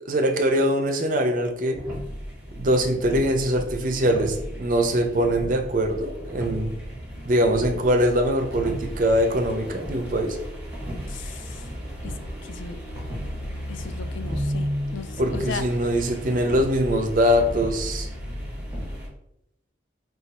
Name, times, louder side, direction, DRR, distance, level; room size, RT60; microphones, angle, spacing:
voice 1, 0.1-1.8 2.5-6.8 7.2-10.4 15.2-18.1, equal, 45° right, 6 dB, 0.4 m, -22 dB
sound 1, 1.7-19.1, equal, 10° right, 1.0 m, -34 dB
voice 2, 11.1-11.7 12.0-12.1 12.4-12.8 13.7-15.6, left 6 dB, 85° left, 10 dB, 0.4 m, -37 dB
3.1 x 2.3 x 4.1 m, 0.82 s
head